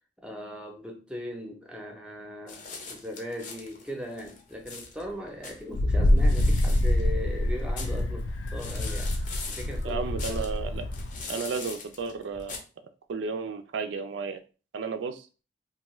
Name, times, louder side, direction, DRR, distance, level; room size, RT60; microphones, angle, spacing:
voice 1, 0.2-2.6 2.9-9.1 9.5-10.6, equal, 5° right, 0.5 m, -39 dB
sound 1, 2.5-12.6, left 4 dB, 45° left, 0.6 m, -43 dB
Wind, 5.7-11.2, left 1 dB, 90° left, 0.4 m, -26 dB
voice 2, 9.8-10.8 11.3-12.5 13.1-14.4 14.7-15.3, right 5 dB, 75° right, 0.4 m, -33 dB
2.6 x 2.4 x 3.0 m
head